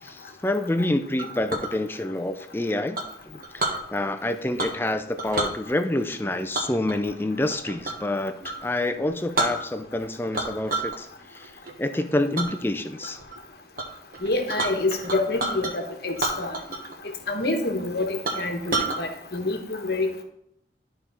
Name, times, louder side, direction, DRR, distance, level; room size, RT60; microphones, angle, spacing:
voice 1, 0.0-13.2, left 1 dB, 10° left, 8 dB, 0.5 m, -28 dB
Chink clink, 1.2-1.7 2.9-3.8 4.6-4.9 5.2-5.5 6.5-8.1 8.4-8.6 9.0-9.1 9.3-10.0 10.3-11.0 11.4-11.7 12.3-12.5 13.0-13.4 13.8-13.9 14.1-15.7 16.1-16.9 17.2-17.3 17.8-17.9 18.2-19.0, right 2 dB, 50° right, 1.3 m, -29 dB
voice 2, 14.2-16.6 17.3-20.2, left 2 dB, 55° left, 4 dB, 1.2 m, -27 dB
12.0 x 4.4 x 4.1 m, 0.72 s
head